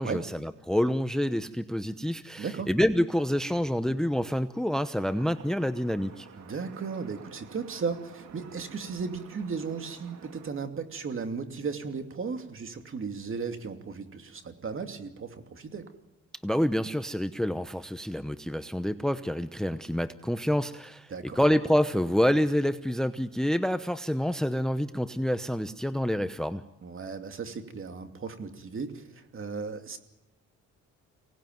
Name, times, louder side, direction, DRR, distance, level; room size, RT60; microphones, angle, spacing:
voice 1, 0.0-6.3 16.4-26.6, equal, ahead, 12 dB, 0.9 m, -27 dB
voice 2, 2.4-2.7 6.4-15.9 21.1-21.4 26.8-30.0, right 5 dB, 45° right, 6 dB, 2.7 m, -36 dB
sound 1, 4.9-10.5, right 7 dB, 65° right, 2.3 m, -50 dB
24.5 x 18.5 x 9.3 m, 0.95 s
cardioid pair, 90°, 30 cm